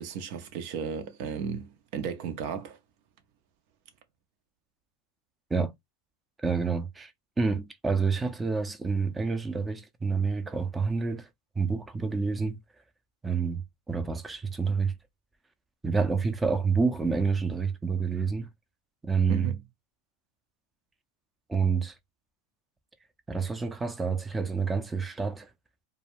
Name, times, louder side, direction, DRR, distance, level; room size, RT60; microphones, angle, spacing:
voice 1, 0.0-2.8 19.3-19.6, right 6 dB, 65° right, 0.6 m, -35 dB
voice 2, 6.4-7.1 7.4-11.3 11.6-12.6 13.2-15.0 15.8-18.5 19.0-19.5 21.5-21.9 23.3-25.5, right 5 dB, 15° right, 0.5 m, -28 dB
2.2 x 2.2 x 3.2 m
hypercardioid pair, 105°, 0 cm